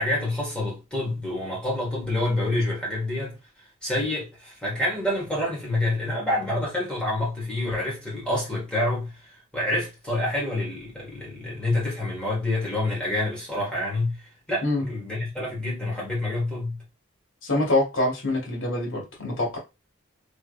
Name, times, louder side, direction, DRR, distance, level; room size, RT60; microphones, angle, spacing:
voice 1, 0.0-3.4 3.8-9.2 9.5-16.8, left 1 dB, 5° left, 1.6 m, -27 dB
voice 2, 17.4-19.6, left 2 dB, 65° left, 1.9 m, -25 dB
3.3 x 3.2 x 2.4 m
head